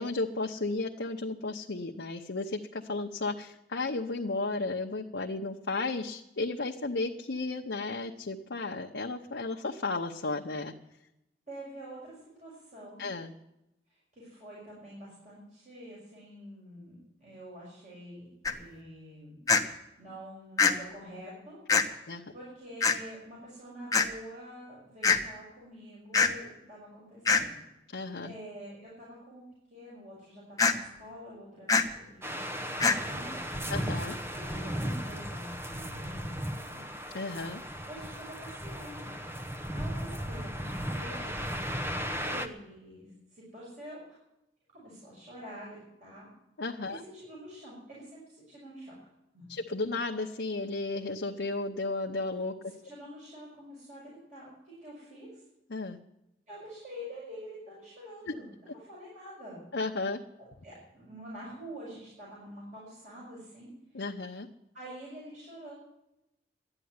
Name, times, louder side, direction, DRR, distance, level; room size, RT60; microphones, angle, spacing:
voice 1, 0.0-10.7 13.0-13.3 22.1-22.2 27.9-28.3 33.7-34.2 37.1-37.6 46.6-47.0 49.5-52.5 55.7-56.0 58.3-58.4 59.7-60.2 63.9-64.5, left 3 dB, 85° left, 1 dB, 0.8 m, -34 dB
voice 2, 11.5-13.0 13.9-19.4 20.0-21.6 21.9-27.6 28.2-29.4 29.7-33.7 34.3-36.9 37.9-41.3 42.2-44.0 44.7-46.3 46.9-48.9 49.3-49.5 52.8-55.4 56.5-59.6 60.6-63.7 64.7-65.7, equal, 45° right, -6 dB, 5.9 m, -47 dB
sound 1, 18.5-18.6 19.5-19.6 20.6-20.7 21.7-21.8 22.8-23.0 23.9-24.1 25.0-25.2 26.1-26.3 27.3-27.4 30.6-30.7 31.7-31.8 32.8-33.0, left 5 dB, 20° left, 1.0 m, -23 dB
sound 2, 32.2-42.5, equal, 15° right, 0.9 m, -36 dB
12.5 x 9.8 x 9.6 m, 0.89 s
head